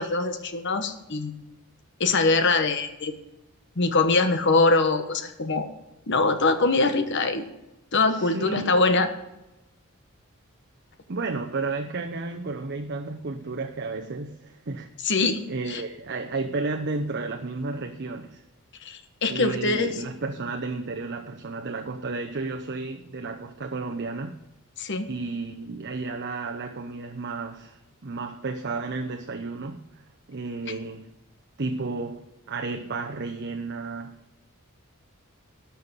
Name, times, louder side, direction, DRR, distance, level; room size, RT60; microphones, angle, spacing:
voice 1, 0.0-1.4 2.0-3.1 3.8-5.7 6.1-7.4 7.9-9.1 15.0-15.8 18.8-19.9 24.8-25.1, left 3 dB, 55° left, 1.2 m, -23 dB
voice 2, 8.1-8.8 11.1-14.9 15.5-18.4 19.3-24.4 25.1-31.1 31.6-34.2, right 3 dB, 55° right, 0.8 m, -32 dB
12.5 x 5.7 x 8.1 m
head